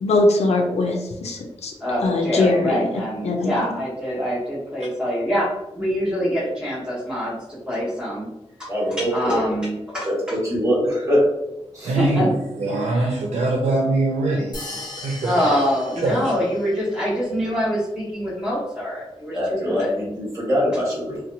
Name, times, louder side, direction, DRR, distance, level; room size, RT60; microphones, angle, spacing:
voice 1, 0.0-1.7 2.0-2.9 3.2-3.7, left 2 dB, 75° left, 2 dB, 0.4 m, -21 dB
voice 2, 1.8-5.5 5.7-8.3 8.6-10.4 11.8-12.3 12.8-13.2 15.2-19.9, equal, 10° right, -7 dB, 1.1 m, -25 dB
voice 3, 8.7-9.4 10.0-11.2 11.7-11.9 19.3-21.2, equal, 30° right, -7 dB, 1.3 m, -23 dB
voice 4, 11.8-15.6 16.0-16.4, right 2 dB, 85° right, -1 dB, 0.4 m, -23 dB
sound 1, 14.5-16.8, left 2 dB, 40° left, 0.6 m, -38 dB
2.7 x 2.1 x 2.6 m, 0.92 s
wide cardioid pair, 120°, 11 cm